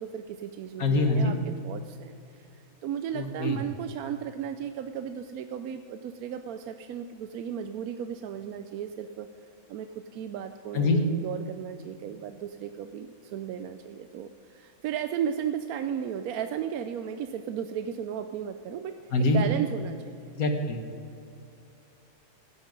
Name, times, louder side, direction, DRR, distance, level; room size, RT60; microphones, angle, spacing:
voice 1, 0.0-1.4 1.6-2.5 2.8-9.3 9.7-20.3, right 9 dB, 80° right, 8 dB, 1.1 m, -35 dB
voice 2, 0.8-1.4 3.1-3.6 10.7-11.0 19.1-19.4 20.4-20.8, left 2 dB, 75° left, 5 dB, 1.8 m, -24 dB
15.5 x 10.0 x 5.3 m, 2.6 s
omnidirectional pair, 1.5 m